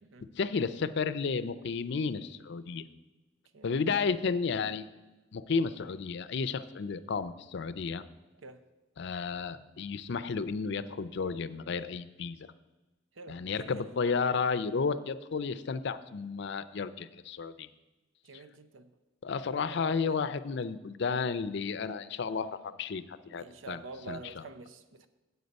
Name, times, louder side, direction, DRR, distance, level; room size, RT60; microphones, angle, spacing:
voice 1, 0.4-2.9 3.6-4.9 5.3-8.0 9.0-12.5 13.3-17.7 18.3-18.4 19.2-23.8 24.1-24.4, left 5 dB, 65° left, 0.5 m, -32 dB
voice 2, 3.5-3.9 8.4-8.6 13.1-13.9 18.2-18.9 19.5-20.3 23.3-25.1, right 3 dB, 85° right, 0.6 m, -48 dB
8.1 x 8.0 x 5.2 m
head